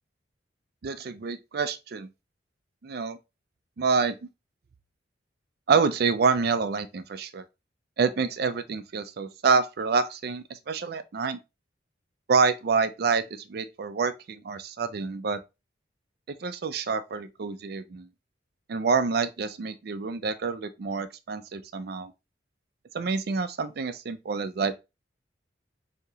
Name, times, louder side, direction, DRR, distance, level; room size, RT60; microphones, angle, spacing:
voice 1, 0.8-2.1 2.8-3.2 3.8-4.2 5.7-7.4 8.0-11.4 12.3-15.4 16.4-18.1 18.7-22.1 22.9-24.8, right 5 dB, 55° right, 0.4 m, -27 dB
4.7 x 2.8 x 2.7 m
head